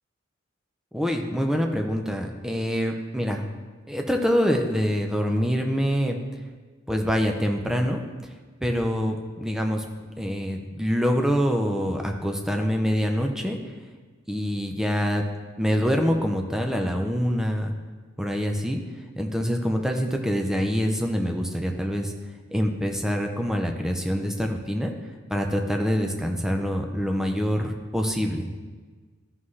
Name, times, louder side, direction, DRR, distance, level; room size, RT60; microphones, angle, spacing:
voice 1, 0.9-3.5 3.9-6.2 6.9-8.0 8.6-9.8 10.2-13.6 14.3-15.2 15.6-17.7 18.2-18.8 19.2-22.1 22.5-24.9 25.3-28.5, equal, 5° right, 2 dB, 0.7 m, -25 dB
13.0 x 5.6 x 3.3 m, 1.4 s
head